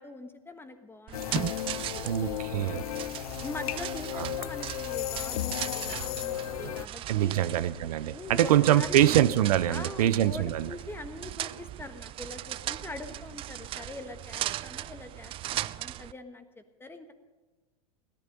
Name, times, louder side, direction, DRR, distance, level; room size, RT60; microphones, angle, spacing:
voice 1, 0.0-2.8 3.4-7.5 8.1-9.1 9.7-16.4 16.8-17.1, left 2 dB, 10° left, 8 dB, 1.4 m, -43 dB
sound 1, 1.1-6.9, left 14 dB, 70° left, 0.4 m, -35 dB
sound 2, 1.1-16.1, right 13 dB, 30° right, 0.4 m, -38 dB
voice 2, 2.0-2.8 4.2-4.3 7.1-10.7, right 12 dB, 75° right, 14 dB, 0.7 m, -24 dB
17.5 x 12.0 x 5.3 m, 1.3 s
hypercardioid pair, 100°, 20 cm